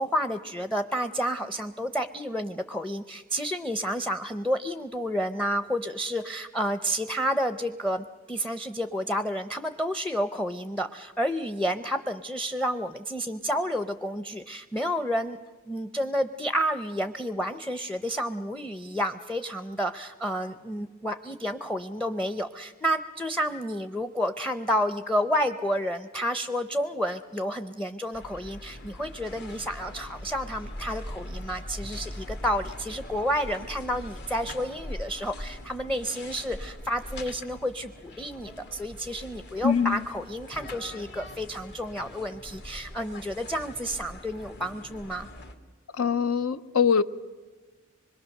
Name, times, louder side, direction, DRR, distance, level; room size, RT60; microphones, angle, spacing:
voice 1, 0.0-15.4 15.6-45.3, equal, 5° left, 0.6 m, -30 dB
sound 1, 28.1-45.5, left 1 dB, 55° left, 1.9 m, -42 dB
voice 2, 39.6-40.0 45.9-47.0, left 6 dB, 90° left, 0.7 m, -23 dB
25.0 x 22.0 x 6.5 m
head